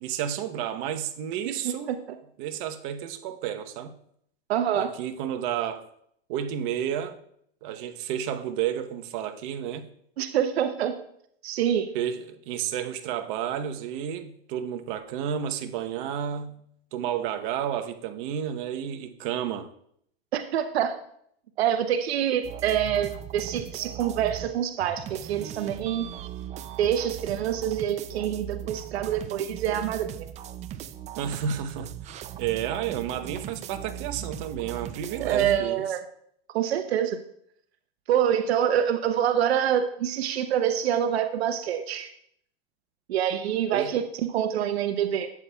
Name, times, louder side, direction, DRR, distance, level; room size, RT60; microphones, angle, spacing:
voice 1, 0.0-1.9 2.4-3.9 4.7-5.9 6.3-7.2 7.6-9.9 11.9-16.6 16.9-19.7 31.2-35.8 43.7-43.9, right 9 dB, 55° right, 0.9 m, -31 dB
voice 2, 1.5-2.0 4.5-4.9 10.2-10.9 11.4-11.9 20.3-21.0 21.6-26.1 26.8-30.1 35.2-36.0 36.5-37.2 38.1-42.1 43.1-45.3, right 9 dB, 85° right, 0.7 m, -26 dB
sound 1, 22.4-24.5 24.8-35.6, right 10 dB, 25° right, 0.4 m, -39 dB
12.0 x 8.2 x 2.3 m
supercardioid pair, 125°, 31 cm